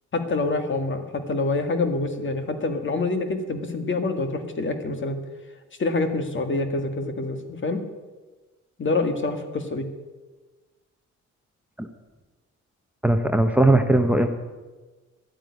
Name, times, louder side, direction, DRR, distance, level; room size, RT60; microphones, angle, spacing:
voice 1, 0.1-5.2 5.8-7.8 8.8-9.9, left 3 dB, 40° left, 7 dB, 2.0 m, -26 dB
voice 2, 13.0-14.3, right 1 dB, 5° right, 7 dB, 1.0 m, -19 dB
12.5 x 9.0 x 9.6 m, 1.2 s
cardioid pair, 90°, 30 cm